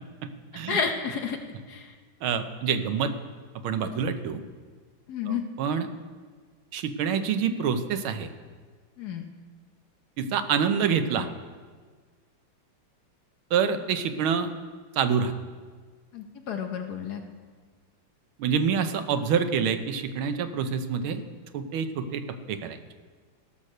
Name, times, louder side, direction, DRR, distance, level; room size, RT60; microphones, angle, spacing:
voice 1, 0.7-1.4 1.7-1.9 5.1-5.4 9.0-9.2 16.1-17.2, left 6 dB, 60° left, 5 dB, 1.2 m, -30 dB
voice 2, 2.2-3.1 3.6-4.4 5.3-5.9 6.7-8.3 10.2-11.3 13.5-14.5 15.0-15.3 18.4-21.2 21.5-22.8, right 7 dB, 85° right, 9 dB, 1.6 m, -26 dB
16.5 x 6.4 x 6.5 m, 1.5 s
omnidirectional pair, 2.3 m